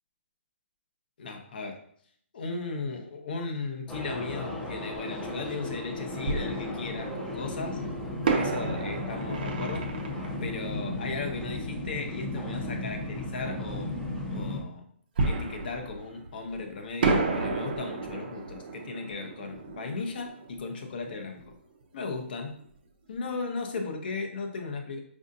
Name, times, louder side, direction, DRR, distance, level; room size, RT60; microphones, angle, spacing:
voice 1, 1.2-1.8 2.3-7.8 8.3-9.9 10.4-14.0 14.3-14.8 15.2-21.4 21.9-22.5 23.1-25.0, left 4 dB, 45° left, 3 dB, 0.7 m, -36 dB
sound 1, 3.9-14.6, left 2 dB, ahead, 0.6 m, -35 dB
Fireworks, 4.9-5.0 6.2-7.4 8.2-11.7 15.2-16.6 17.0-21.6 21.8-21.9 22.4-22.6, right 3 dB, 45° right, 0.5 m, -32 dB
4.9 x 2.6 x 2.5 m, 0.64 s
hypercardioid pair, 165°, 7 cm